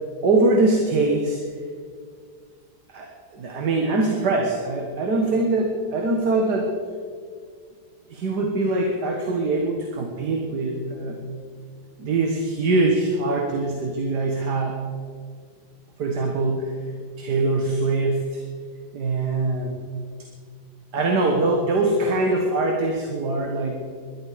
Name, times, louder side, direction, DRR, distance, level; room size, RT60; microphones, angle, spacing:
voice 1, 0.2-1.4 2.9-6.8 8.1-11.2 12.0-14.8 16.0-16.8 17.2-18.4 18.9-19.8 20.9-23.8, right 2 dB, 80° right, 2 dB, 2.0 m, -23 dB
20.0 x 11.5 x 5.0 m, 2.1 s
omnidirectional pair, 1.8 m